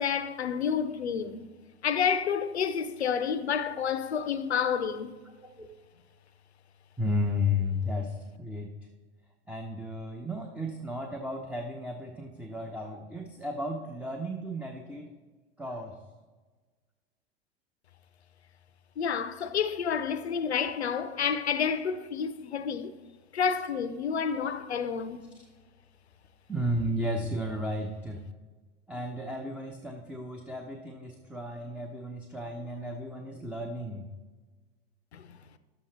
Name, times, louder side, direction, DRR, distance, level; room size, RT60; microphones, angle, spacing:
voice 1, 0.0-1.4 1.8-5.2 19.0-23.0 23.3-25.2 35.1-35.4, left 7 dB, 85° left, 0.6 m, -29 dB
voice 2, 7.0-8.7 9.5-15.1 15.6-16.0 26.5-28.2 28.9-34.1, left 1 dB, 5° right, 0.7 m, -33 dB
11.5 x 7.4 x 3.4 m
figure-of-eight pair, 85°, 32 cm